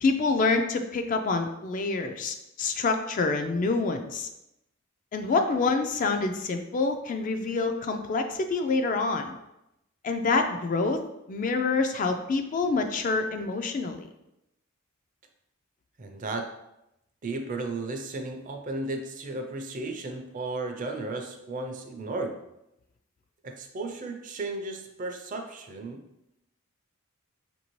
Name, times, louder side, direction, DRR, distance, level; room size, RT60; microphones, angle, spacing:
voice 1, 0.0-4.3 5.1-9.4 10.0-11.0 11.3-14.1, left 3 dB, 40° left, 6 dB, 0.3 m, -27 dB
voice 2, 16.0-16.5 17.2-22.4 23.4-26.0, right 2 dB, 40° right, 5 dB, 0.4 m, -34 dB
4.9 x 2.6 x 3.0 m, 0.87 s
head